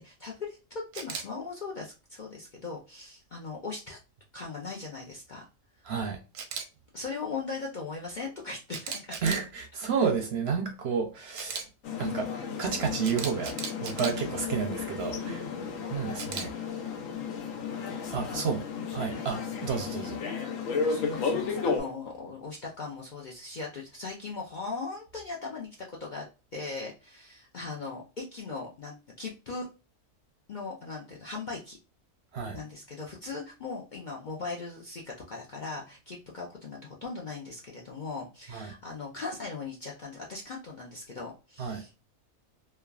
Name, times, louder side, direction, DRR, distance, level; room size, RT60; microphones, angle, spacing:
voice 1, 0.0-4.0 4.3-5.5 6.9-9.2 10.0-10.1 15.2-15.6 18.3-18.6 19.1-19.2 20.9-26.2 26.5-29.7 30.5-31.8 32.5-42.0, left 4 dB, 55° left, 0.5 m, -39 dB
Camera, 0.9-1.2 6.3-6.6 8.7-9.4 11.3-11.6 13.0-14.1 16.2-16.5, right 6 dB, 85° right, 1.0 m, -36 dB
voice 2, 5.9-6.2 9.2-11.7 12.0-12.3 12.6-13.5 13.8-15.4 15.9-16.5 18.1-18.6 18.9-20.2 32.3-32.6 38.5-38.7 41.6-41.8, right 6 dB, 65° right, 0.7 m, -31 dB
sound 1, 11.8-21.8, left 5 dB, 80° left, 1.1 m, -33 dB
3.2 x 2.3 x 2.3 m
omnidirectional pair, 1.4 m